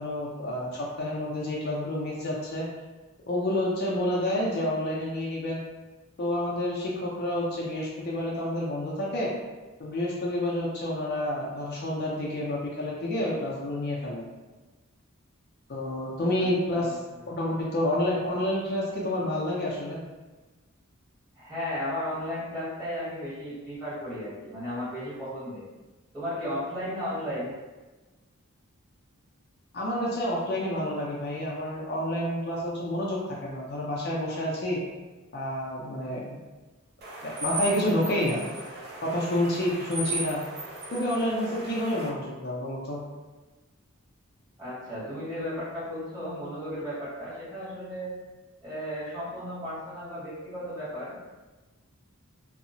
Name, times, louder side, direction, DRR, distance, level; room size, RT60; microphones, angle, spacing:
voice 1, 0.0-2.7 3.3-5.6 6.2-9.3 9.8-14.3 15.7-17.0 17.3-20.0 29.7-34.8 35.3-36.4 37.2-38.5 39.0-40.4 40.9-43.0, left 1 dB, 45° left, -4 dB, 0.4 m, -29 dB
voice 2, 16.2-17.0 21.4-25.6 26.1-27.5 44.6-48.1 48.6-51.3, equal, 20° right, -12 dB, 1.2 m, -35 dB
sound 1, 37.0-42.1, right 2 dB, 45° right, 0.4 m, -36 dB
2.7 x 2.0 x 2.6 m, 1.2 s
head